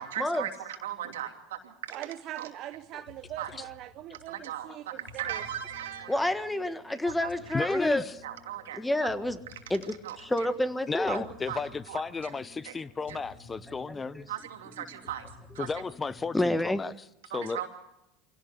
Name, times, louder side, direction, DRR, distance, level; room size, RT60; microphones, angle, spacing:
voice 1, 0.0-2.0 2.4-2.5 3.4-3.5 4.3-6.2 7.0-7.8 8.2-8.8 10.0-10.5 11.1-11.2 11.5-11.6 11.9-12.3 12.6-12.7 13.1-13.2 14.3-15.3 15.5-15.7 17.3-17.7, right 11 dB, 85° right, 2.7 m, -38 dB
voice 2, 1.9-5.4, right 13 dB, 55° right, 0.9 m, -42 dB
sound 1, 2.7-16.6, left 3 dB, 80° left, 4.2 m, -54 dB
voice 3, 6.1-8.0 8.7-9.4 9.7-11.2 14.2-14.3 16.3-16.8, left 1 dB, 10° left, 1.6 m, -28 dB
voice 4, 7.5-8.1 10.9-14.3 15.6-16.9 17.3-17.7, left 4 dB, 25° left, 0.7 m, -34 dB
24.5 x 17.0 x 8.2 m
hypercardioid pair, 90°, 0 cm